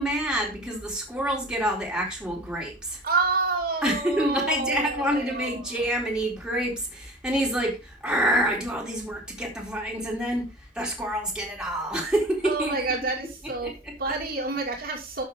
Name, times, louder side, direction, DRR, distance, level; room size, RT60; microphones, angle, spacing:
voice 1, 0.0-3.0 3.8-12.8 13.6-14.2, equal, 5° right, 4.0 m, -27 dB
voice 2, 3.0-5.7 12.4-13.7 14.0-15.2, right 3 dB, 55° right, 2.9 m, -28 dB
12.0 x 7.4 x 3.9 m
head